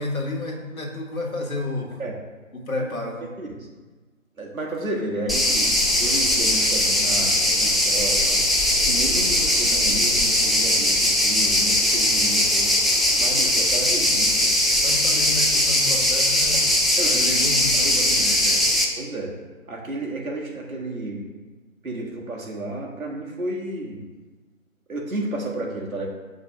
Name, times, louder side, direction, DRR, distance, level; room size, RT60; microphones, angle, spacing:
voice 1, 0.0-2.0 2.5-3.3 14.7-18.7, left 2 dB, 90° left, 0 dB, 1.4 m, -31 dB
voice 2, 3.4-3.7 4.4-8.4 8.8-12.7 13.2-14.6 17.0-17.2 17.8-18.1 18.9-19.4 19.7-21.3 21.8-24.0 24.9-26.1, right 2 dB, 80° right, -1 dB, 1.5 m, -32 dB
sound 1, 5.3-18.8, left 1 dB, ahead, 0.4 m, -20 dB
5.3 x 3.4 x 5.3 m, 1.3 s
figure-of-eight pair, 170°, 41 cm